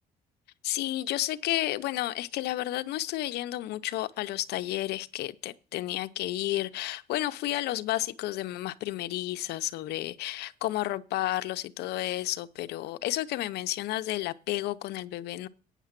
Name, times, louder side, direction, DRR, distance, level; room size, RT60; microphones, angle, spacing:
voice 1, 0.6-15.5, left 15 dB, 75° left, 0.7 m, -31 dB
9.1 x 6.6 x 7.4 m
cardioid pair, 110°, 17 cm